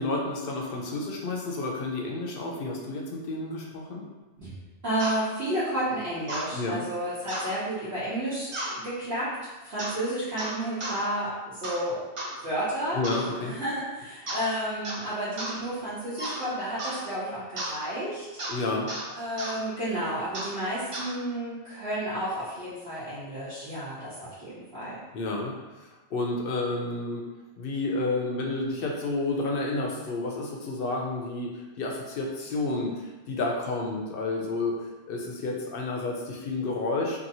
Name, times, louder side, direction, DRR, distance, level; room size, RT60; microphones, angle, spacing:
voice 1, 0.0-4.1 6.5-6.8 12.9-13.5 18.5-18.9 25.1-25.5 25.8-27.2 27.6-34.7 35.1-37.2, left 2 dB, 60° left, 0 dB, 0.7 m, -30 dB
voice 2, 4.8-9.3 9.6-12.0 12.4-13.0 13.4-18.2 19.1-25.0, right 1 dB, 60° right, -12 dB, 1.0 m, -31 dB
sound 1, 5.0-5.2 6.3-6.5 7.3-7.5 8.5-8.8 9.8-10.0 10.4-11.0 11.6-11.8 12.2-12.4 13.0-13.3 14.3-14.5 14.8-15.1 15.4-15.6 16.2-16.4 16.8-17.0 17.6-17.8 18.4-18.6 18.9-19.1 19.4-19.6 20.3-20.6 20.9-21.1, right 1 dB, 45° right, 0.4 m, -34 dB
2.8 x 2.6 x 2.7 m, 1.2 s
omnidirectional pair, 1.2 m